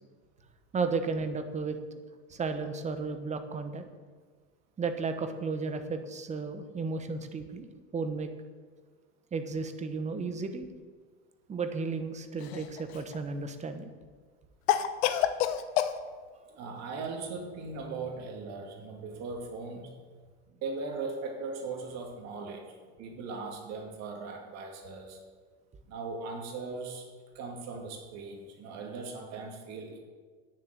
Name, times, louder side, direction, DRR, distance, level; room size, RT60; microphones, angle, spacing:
voice 1, 0.7-2.0 2.3-3.8 4.8-7.7 7.9-8.3 9.3-10.7 11.5-13.9, right 4 dB, 20° right, 8 dB, 1.1 m, -33 dB
Cough, 12.4-13.2 14.7-16.0, left 11 dB, 75° left, 0.9 m, -28 dB
voice 2, 16.6-19.9 20.5-25.2 25.8-27.1 27.3-30.0, right 4 dB, 50° right, 2 dB, 2.5 m, -39 dB
9.5 x 7.3 x 7.7 m, 1.5 s
supercardioid pair, 120°, 33 cm